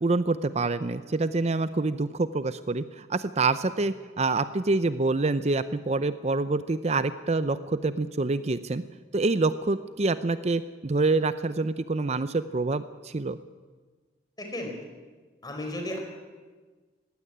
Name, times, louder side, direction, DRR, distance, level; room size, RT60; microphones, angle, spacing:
voice 1, 0.0-8.8 9.1-13.4, right 3 dB, 40° right, 13 dB, 0.6 m, -26 dB
voice 2, 14.4-14.8 15.4-16.0, left 1 dB, 25° left, 3 dB, 4.5 m, -34 dB
19.0 x 16.5 x 9.8 m, 1.4 s
head